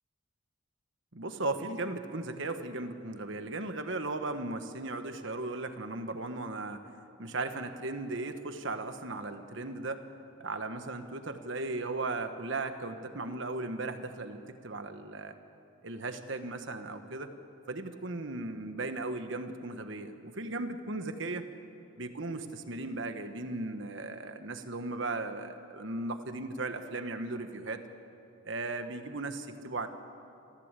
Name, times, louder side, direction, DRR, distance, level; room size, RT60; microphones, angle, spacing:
voice 1, 1.1-6.8 7.2-10.0 10.4-15.4 15.8-17.3 17.7-21.5 22.0-27.8 28.4-29.9, right 2 dB, 60° right, 8 dB, 1.4 m, -36 dB
27.5 x 15.0 x 8.3 m, 2.8 s
head